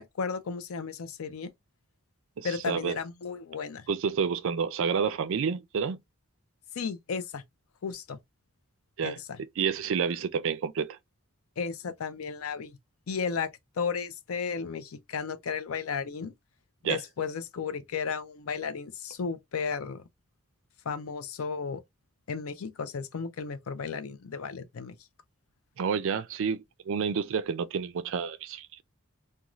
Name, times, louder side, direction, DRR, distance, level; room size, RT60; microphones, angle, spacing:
voice 1, 0.0-1.5 2.4-3.9 6.8-7.4 7.8-8.2 9.0-9.4 11.6-12.7 13.1-13.5 13.8-16.3 16.8-20.0 20.9-21.8 22.3-25.0, left 5 dB, 70° left, 0.5 m, -34 dB
voice 2, 2.4-3.0 3.9-6.0 9.0-9.2 9.6-11.0 16.8-17.0 25.8-28.8, right 6 dB, 60° right, 0.4 m, -29 dB
2.5 x 2.3 x 2.9 m
head